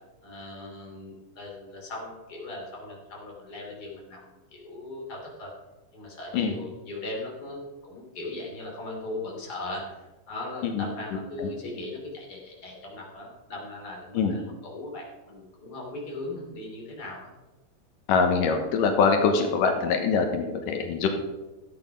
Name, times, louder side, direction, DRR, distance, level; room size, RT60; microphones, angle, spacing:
voice 1, 0.2-5.5 5.9-17.3, left 2 dB, 30° left, -3 dB, 3.4 m, -39 dB
voice 2, 18.1-21.1, left 5 dB, 85° left, 4 dB, 2.8 m, -23 dB
13.5 x 8.5 x 5.2 m, 1.1 s
omnidirectional pair, 3.7 m